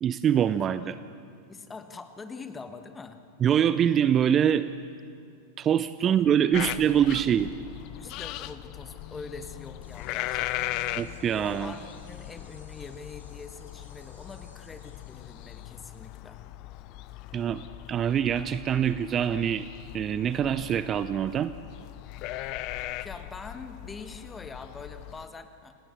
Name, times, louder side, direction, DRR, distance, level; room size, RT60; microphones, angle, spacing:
voice 1, 0.0-1.0 3.4-4.7 5.6-7.5 11.0-11.7 17.3-17.6 17.9-19.7 19.9-21.5, right 9 dB, 25° right, 14 dB, 0.6 m, -24 dB
voice 2, 1.5-3.2 6.0-6.2 6.6-6.7 7.9-11.0 11.4-16.4 23.0-25.8, left 4 dB, 15° left, 9 dB, 1.6 m, -44 dB
sound 1, 6.5-25.3, left 15 dB, 40° left, 0.7 m, -39 dB
sound 2, 9.8-16.2, left 1 dB, 80° left, 4.8 m, -59 dB
28.5 x 18.0 x 7.2 m, 2.3 s
figure-of-eight pair, 90°, 0 cm